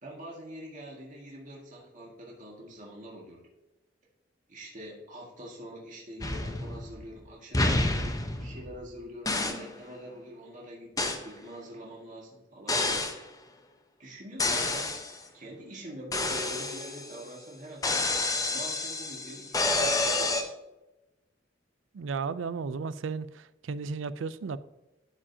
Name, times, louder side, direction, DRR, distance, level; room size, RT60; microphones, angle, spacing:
voice 1, 0.0-3.5 4.5-13.0 14.0-18.0 18.5-20.5, right 1 dB, 45° right, 1.9 m, -45 dB
sound 1, 6.2-7.1 7.5-8.9 9.3-9.7 11.0-11.3 12.7-13.2 14.4-15.2 16.1-17.2 17.8-20.4, left 2 dB, 20° left, 0.9 m, -29 dB
voice 2, 21.9-24.6, right 5 dB, 80° right, 0.4 m, -34 dB
13.0 x 5.0 x 2.8 m
head